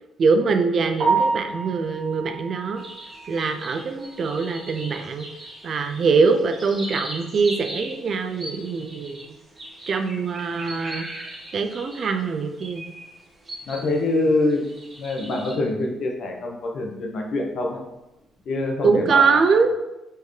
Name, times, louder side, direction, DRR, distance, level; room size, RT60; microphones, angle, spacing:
voice 1, 0.2-2.8 3.3-5.3 5.6-9.3 9.9-11.1 11.5-12.8 18.8-19.8, right 4 dB, 55° right, 7 dB, 0.4 m, -22 dB
Piano, 1.0-5.0 5.3-5.4 5.9-6.0 6.4-6.5 9.6-9.7 18.1-18.4, right 4 dB, 85° right, 1.3 m, -29 dB
sound 1, 2.8-13.9 14.3-15.5, right 1 dB, 30° right, 1.4 m, -39 dB
voice 2, 13.7-14.6 15.0-17.8 18.5-19.6, left 2 dB, 65° left, 2 dB, 0.8 m, -25 dB
4.4 x 3.3 x 3.2 m, 0.97 s
cardioid pair, 90°, 0 cm